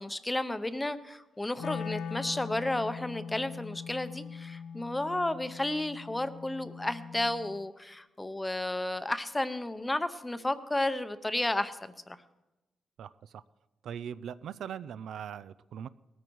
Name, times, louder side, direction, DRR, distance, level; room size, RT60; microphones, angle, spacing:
voice 1, 0.0-12.2, left 1 dB, 10° left, 12 dB, 0.7 m, -32 dB
Wind instrument woodwind instrument, 1.6-7.7, left 6 dB, 65° left, 0.8 m, -41 dB
voice 2, 13.0-13.4 13.8-15.9, right 8 dB, 70° right, 16 dB, 0.5 m, -40 dB
19.5 x 14.0 x 4.7 m, 1.0 s
wide cardioid pair, 155°, 0 cm